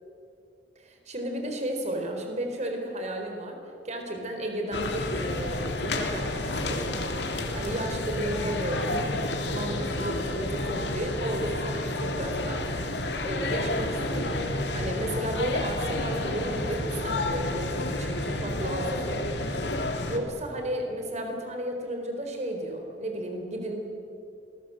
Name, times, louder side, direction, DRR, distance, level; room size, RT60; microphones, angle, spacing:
voice 1, 0.8-3.6 3.8-6.9 7.5-9.2 9.5-12.7 13.2-19.2 20.1-23.7, right 1 dB, 40° right, 3 dB, 4.1 m, -33 dB
sound 1, 4.7-20.2, left 2 dB, 65° left, 2.7 m, -30 dB
27.5 x 20.5 x 7.9 m, 2.5 s
head